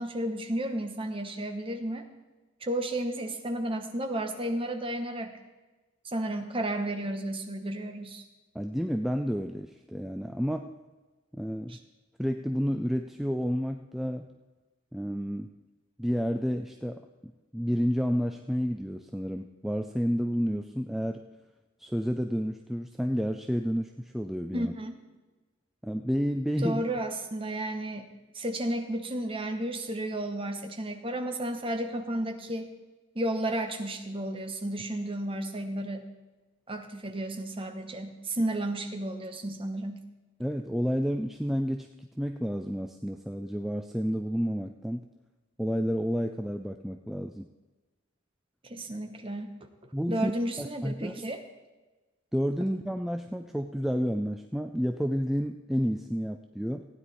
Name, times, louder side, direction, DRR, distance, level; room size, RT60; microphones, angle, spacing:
voice 1, 0.0-2.1 2.6-5.4 6.0-8.2 11.7-11.8 24.5-25.0 26.6-32.7 33.1-36.1 36.7-40.0 48.6-49.5 50.1-51.4, right 1 dB, 25° right, 5 dB, 1.0 m, -33 dB
voice 2, 8.6-10.7 11.3-11.8 12.2-14.3 14.9-15.5 16.0-17.0 17.5-21.2 21.8-24.7 25.8-26.8 40.4-45.0 45.6-47.5 49.9-50.3 50.6-51.1 52.3-56.9, equal, ahead, 4 dB, 0.3 m, -30 dB
15.5 x 9.7 x 4.1 m, 1.2 s
head